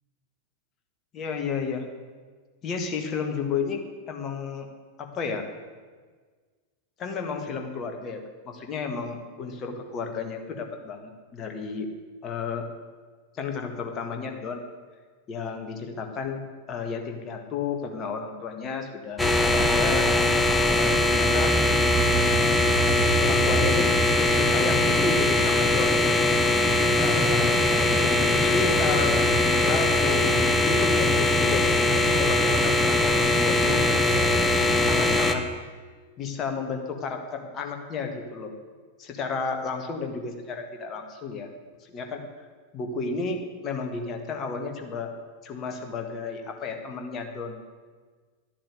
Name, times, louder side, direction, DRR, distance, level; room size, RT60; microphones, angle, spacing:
voice 1, 1.1-1.8 2.6-3.8 4.1-4.7 5.0-5.5 7.0-8.2 8.4-11.9 12.2-12.6 13.3-14.6 15.3-16.4 16.7-20.1 20.7-21.5 23.2-26.3 27.0-33.8 34.7-35.4 36.2-38.5 39.0-41.5 41.8-42.2 42.7-45.1 45.4-47.6, left 5 dB, 30° left, 4 dB, 1.8 m, -32 dB
sound 1, 19.2-35.3, left 2 dB, 10° left, 1.1 m, -21 dB
11.5 x 7.4 x 9.3 m, 1.5 s
figure-of-eight pair, 90°, 0 cm